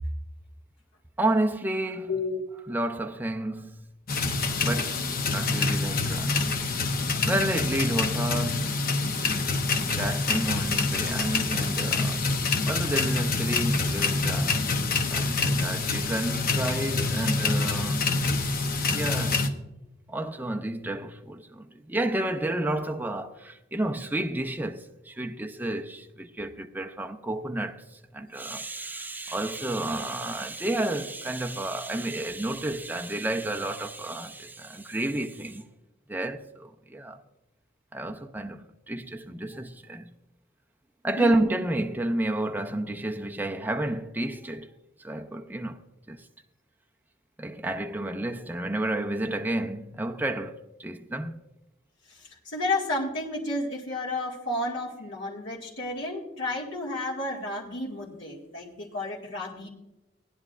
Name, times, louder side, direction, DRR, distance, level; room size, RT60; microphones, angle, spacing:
voice 1, 1.2-2.1 2.7-3.8 4.5-6.4 7.1-8.8 9.9-12.3 12.7-18.1 18.9-19.5 20.1-35.7 36.1-37.2 37.9-40.1 41.0-44.7 45.0-45.8 46.1-46.3 47.4-51.4, right 1 dB, 10° right, 0.5 m, -31 dB
voice 2, 2.1-2.4 4.8-5.0 41.2-41.5 52.1-59.7, left 2 dB, 65° left, 2.1 m, -32 dB
sound 1, 4.1-19.5, left 3 dB, 45° left, 0.9 m, -26 dB
18.5 x 10.5 x 2.5 m
head